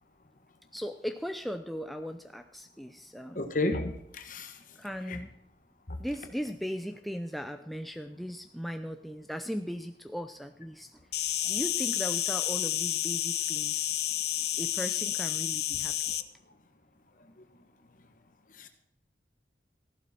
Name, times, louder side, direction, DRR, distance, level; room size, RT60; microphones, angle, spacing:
voice 1, 0.7-3.5 4.8-5.3 6.0-11.0 11.4-13.9 14.6-16.0, equal, ahead, 7 dB, 0.5 m, -38 dB
voice 2, 3.3-4.6 5.1-5.2 5.9-6.0 11.4-11.5 16.1-16.2 18.5-18.7, left 2 dB, 50° left, 7 dB, 1.5 m, -33 dB
Insect, 11.1-16.2, left 13 dB, 65° left, 0.8 m, -30 dB
14.5 x 12.0 x 4.4 m, 0.74 s
head